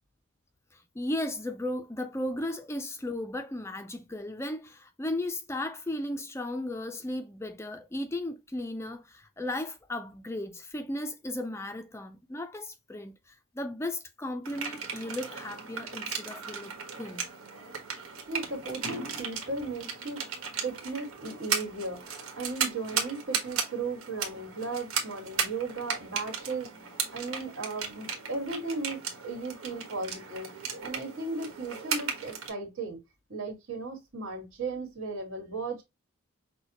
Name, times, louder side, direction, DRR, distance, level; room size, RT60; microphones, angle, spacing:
voice 1, 0.7-17.3, left 1 dB, 10° left, 0.4 m, -35 dB
sound 1, 14.5-32.5, right 6 dB, 85° right, 1.3 m, -36 dB
voice 2, 18.3-20.3 20.6-30.5 30.8-33.0 33.3-35.8, right 3 dB, 70° right, 1.9 m, -36 dB
6.2 x 2.2 x 2.9 m
head